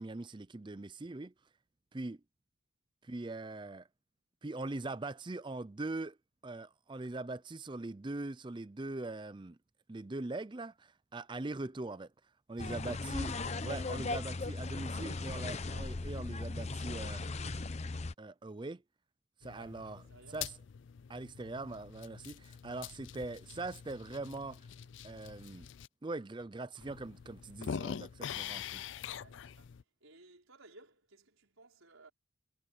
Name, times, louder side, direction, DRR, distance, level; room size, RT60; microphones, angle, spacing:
voice 1, 0.0-1.3 1.9-2.2 3.0-3.9 4.4-6.2 6.4-9.6 9.9-12.1 12.5-17.2 18.2-18.8 19.4-20.0 20.3-20.5 21.1-24.6 25.0-25.7 26.0-28.8, right 2 dB, 20° right, 0.5 m, -41 dB
sound 1, 12.6-18.1, left 3 dB, 30° left, 0.7 m, -38 dB
sound 2, 19.4-25.9 26.4-26.5 26.8-29.8, left 8 dB, 60° left, 0.4 m, -45 dB
voice 2, 19.6-20.4 29.2-29.7 30.0-32.1, right 2 dB, 80° right, 5.0 m, -59 dB
head